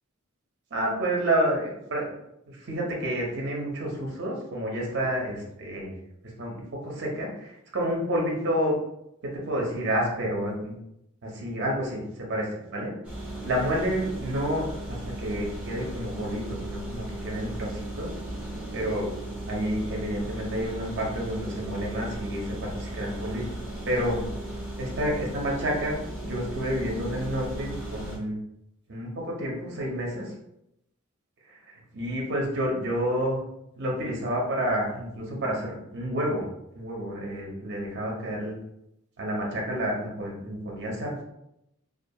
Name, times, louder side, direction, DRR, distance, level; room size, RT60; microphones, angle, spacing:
voice 1, 0.7-2.1 2.5-5.9 6.4-8.7 9.2-10.7 11.2-12.9 13.4-18.1 18.7-19.1 19.5-23.5 23.9-24.2 24.8-28.4 28.9-30.3 31.5-33.4 33.8-36.5 36.7-38.6 39.2-41.2, equal, 50° right, -1 dB, 0.6 m, -29 dB
sound 1, 13.0-28.2, right 1 dB, 5° right, 0.5 m, -36 dB
2.3 x 2.2 x 2.7 m, 0.82 s
head